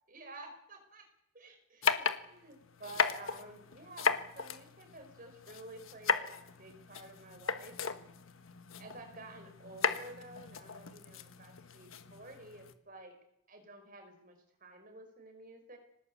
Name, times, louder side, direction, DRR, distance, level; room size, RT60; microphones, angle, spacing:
voice 1, 0.1-1.1 1.3-8.1 8.8-13.1 13.5-15.8, right 2 dB, 40° right, 5 dB, 5.3 m, -51 dB
sound 1, 1.8-12.7, left 6 dB, 80° left, 1.4 m, -36 dB
24.0 x 19.0 x 8.7 m, 0.81 s
head